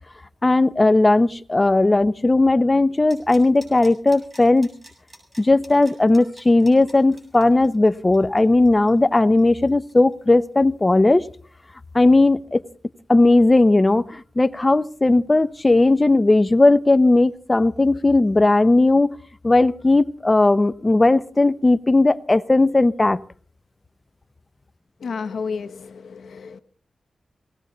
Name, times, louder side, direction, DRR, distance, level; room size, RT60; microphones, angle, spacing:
voice 1, 0.4-4.7 5.4-11.2 11.9-12.6 13.1-19.1 19.4-23.2, left 2 dB, 25° left, 0.8 m, -17 dB
sound 1, 3.1-10.6 10.9-11.0, right 1 dB, 20° right, 7.4 m, -48 dB
voice 2, 25.0-26.6, left 5 dB, 85° left, 1.1 m, -31 dB
19.0 x 18.0 x 4.0 m
cardioid pair, 75°, 0 cm